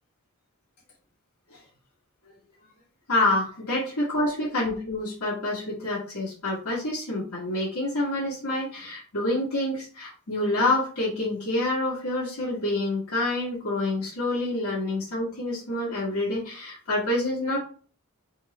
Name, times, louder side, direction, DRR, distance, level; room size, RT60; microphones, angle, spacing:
voice 1, 3.1-17.6, left 2 dB, 85° left, -7 dB, 1.7 m, -27 dB
3.7 x 3.1 x 4.2 m, 0.42 s
head